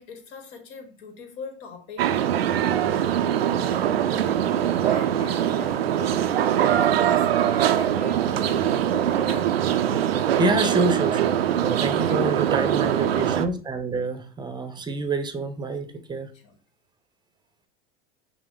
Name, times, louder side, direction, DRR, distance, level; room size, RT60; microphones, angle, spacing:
voice 1, 0.0-9.5 12.0-13.5 16.3-16.6, left 5 dB, 60° left, 5 dB, 1.4 m, -43 dB
sound 1, 2.0-13.5, right 10 dB, 85° right, 0.5 m, -22 dB
voice 2, 10.4-16.3, right 3 dB, 15° right, 8 dB, 0.7 m, -27 dB
5.7 x 2.1 x 3.8 m, 0.38 s
hypercardioid pair, 90°, 29 cm